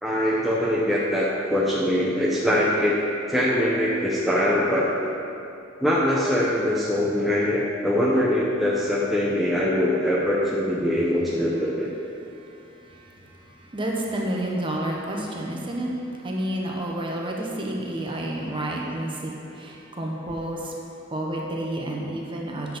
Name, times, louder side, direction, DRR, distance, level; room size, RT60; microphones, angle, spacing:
voice 1, 0.0-3.0 3.3-5.1 5.8-11.9, left 1 dB, ahead, -6 dB, 0.6 m, -23 dB
voice 2, 13.7-15.9 16.2-20.7 21.1-22.8, right 1 dB, 25° right, -1 dB, 1.0 m, -29 dB
7.7 x 6.0 x 5.2 m, 2.7 s
head